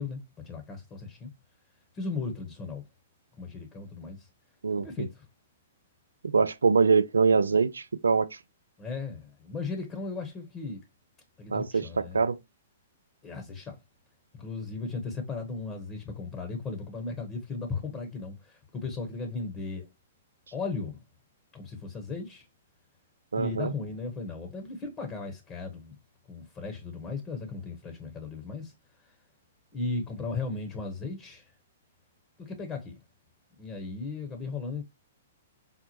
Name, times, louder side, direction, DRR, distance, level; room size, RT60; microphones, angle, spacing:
voice 1, 0.0-1.3 1.9-2.8 3.4-4.3 4.7-5.2 8.8-10.8 11.4-12.2 13.2-13.8 14.3-19.9 20.5-21.0 21.5-22.5 23.3-26.0 26.3-28.7 29.0-29.1 29.7-31.5 32.4-33.0 33.6-34.8, left 4 dB, 20° left, 1.0 m, -36 dB
voice 2, 4.6-5.1 6.2-8.3 11.5-12.4 23.3-23.7, right 5 dB, 75° right, 0.3 m, -24 dB
5.7 x 2.1 x 3.0 m
figure-of-eight pair, 115°, 0 cm